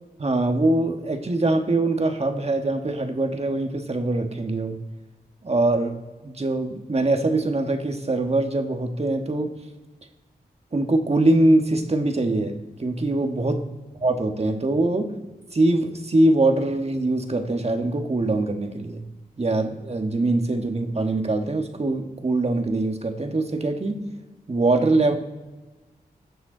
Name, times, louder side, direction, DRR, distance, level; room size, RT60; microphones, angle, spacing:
voice 1, 0.2-4.8 5.4-6.0 6.2-9.6 10.7-13.7 14.0-15.2 15.5-19.0 19.4-24.0 24.5-25.1, right 2 dB, 40° right, 5 dB, 1.6 m, -23 dB
14.0 x 7.1 x 4.0 m, 1.2 s
cardioid pair, 45°, 16 cm